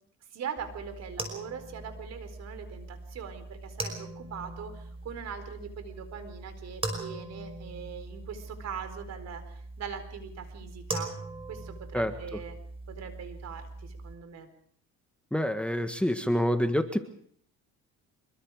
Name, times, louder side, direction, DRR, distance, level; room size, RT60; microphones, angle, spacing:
voice 1, 0.3-11.1 11.5-12.6 12.9-14.5, right 7 dB, 60° right, 10 dB, 4.3 m, -41 dB
sound 1, 0.6-14.1, right 2 dB, 20° right, 5.6 m, -41 dB
voice 2, 11.9-12.4 15.3-17.0, equal, 5° left, 8 dB, 1.6 m, -27 dB
25.5 x 23.0 x 4.9 m, 0.62 s
cardioid pair, 110°, 30 cm